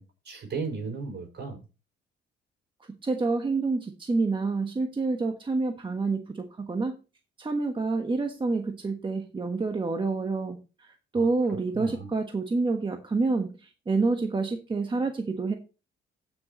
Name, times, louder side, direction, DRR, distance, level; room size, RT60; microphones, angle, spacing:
voice 1, 0.0-1.6 11.1-12.1, right 4 dB, 60° right, 3 dB, 5.6 m, -36 dB
voice 2, 3.0-6.9 7.4-10.9 11.1-15.5, right 3 dB, 25° right, 4 dB, 1.3 m, -28 dB
16.0 x 6.6 x 3.1 m, 0.31 s
cardioid pair, 90°, 20 cm